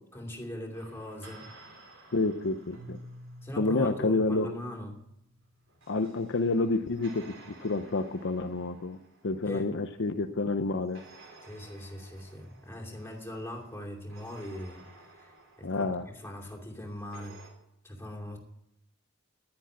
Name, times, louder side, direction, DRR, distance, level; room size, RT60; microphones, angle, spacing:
voice 1, 0.1-1.5 3.4-5.0 9.4-9.7 11.4-14.9 15.1-15.3 15.6-15.9 16.1-17.4 17.8-18.4, left 1 dB, 10° left, 0 dB, 2.7 m, -40 dB
sound 1, 0.7-3.9 5.4-10.4 10.9-17.5, right 3 dB, 65° right, 4.6 m, -55 dB
voice 2, 2.1-3.0 3.6-4.5 5.9-7.3 7.6-9.0 9.2-11.0 15.6-16.0, left 3 dB, 60° left, 7 dB, 0.8 m, -29 dB
Keyboard (musical), 2.7-5.7, equal, 85° right, 2.8 m, -50 dB
11.0 x 10.5 x 9.6 m, 0.79 s
head